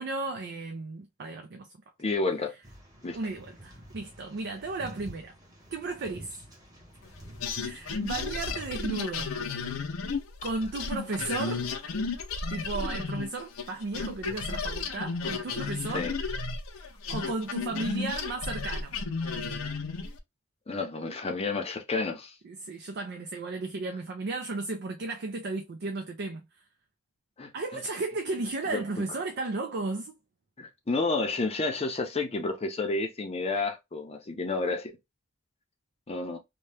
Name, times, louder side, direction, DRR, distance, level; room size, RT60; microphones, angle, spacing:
voice 1, 0.0-1.7 3.1-5.3 5.7-6.4 7.6-9.3 10.4-11.7 12.5-16.1 17.1-18.9 22.4-26.4 27.5-30.2, right 3 dB, 55° right, 0.4 m, -34 dB
voice 2, 2.0-2.5 3.0-3.2 15.9-16.1 20.7-22.3 27.4-27.5 28.7-28.8 30.6-34.9 36.1-36.4, left 3 dB, 30° left, 0.6 m, -30 dB
sound 1, 2.6-8.8, equal, 20° right, 1.0 m, -49 dB
sound 2, 7.4-13.7 13.9-20.2, left 4 dB, 80° left, 0.5 m, -33 dB
2.8 x 2.2 x 3.3 m
head